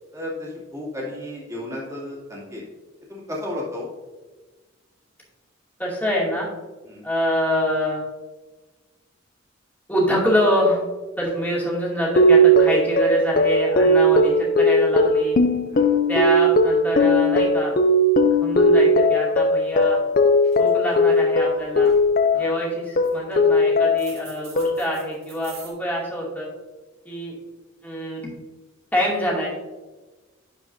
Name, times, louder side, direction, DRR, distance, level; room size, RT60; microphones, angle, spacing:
voice 1, 0.1-2.6 3.1-3.9 6.9-7.0 15.6-15.9 22.3-22.6, left 1 dB, 15° right, -4 dB, 2.4 m, -33 dB
voice 2, 5.8-6.5 7.0-8.0 9.9-10.8 11.2-15.4 16.1-17.7 18.4-20.0 20.6-21.9 22.3-26.5 27.0-27.3 27.8-28.3 28.9-29.5, equal, 10° left, -5 dB, 2.3 m, -25 dB
sound 1, 12.2-22.6 23.0-24.2 24.6-25.1, equal, 45° left, 0.5 m, -18 dB
sound 2, 19.8-20.1 20.4-21.2 21.6-22.1 22.8-23.5 24.0-25.7, right 6 dB, 50° right, 2.2 m, -45 dB
11.5 x 5.1 x 2.6 m, 1.2 s
head